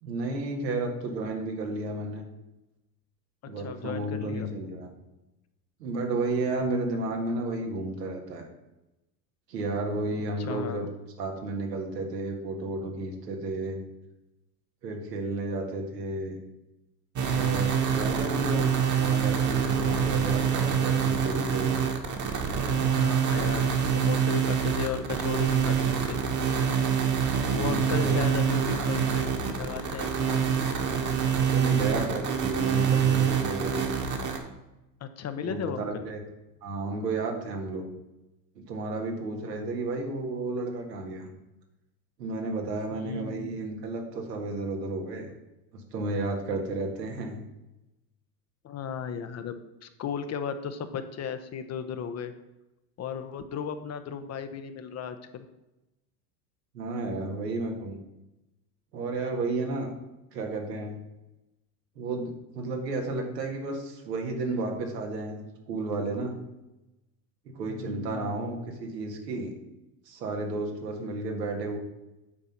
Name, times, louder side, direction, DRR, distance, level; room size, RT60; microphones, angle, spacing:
voice 1, 0.0-2.2 3.5-4.9 5.8-8.4 9.5-10.9 11.2-13.8 14.8-16.4 17.3-18.7 19.0-21.8 27.5-28.3 29.3-29.5 31.4-33.9 35.4-36.2 36.6-37.9 38.6-41.3 42.2-45.3 45.7-47.4 56.7-58.0 58.9-59.9 60.3-61.0 62.0-66.4 67.5-69.5 70.1-71.8, right 2 dB, 85° right, 2 dB, 1.8 m, -32 dB
voice 2, 3.6-4.5 6.7-6.8 10.4-10.9 18.0-18.8 22.8-26.2 27.5-30.4 35.0-36.1 42.9-43.7 48.6-52.3 53.0-55.5 67.7-68.6, left 7 dB, 35° left, 9 dB, 0.8 m, -36 dB
sound 1, 17.2-34.4, right 7 dB, 40° right, 1.5 m, -26 dB
8.6 x 4.0 x 5.8 m, 0.96 s
hypercardioid pair, 85°, 48 cm